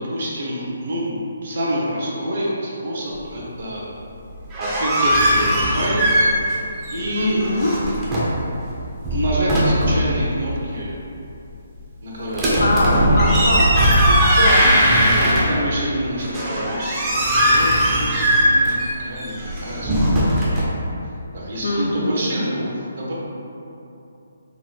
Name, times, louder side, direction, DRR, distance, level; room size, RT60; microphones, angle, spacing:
voice 1, 0.0-3.8 4.6-6.2 6.9-7.4 9.1-10.9 12.0-12.6 15.1-18.8 19.0-20.7 21.3-23.1, right 1 dB, 60° right, -5 dB, 0.9 m, -27 dB
sound 1, 4.3-6.6 6.8-8.4 8.9-10.1 12.3-15.8 16.2-20.6, equal, 15° right, 0.6 m, -19 dB
voice 2, 7.1-7.7 12.6-15.5 21.6-22.2, left 1 dB, 85° left, 0 dB, 0.5 m, -22 dB
3.8 x 2.2 x 3.2 m, 2.7 s
hypercardioid pair, 160°, 0 cm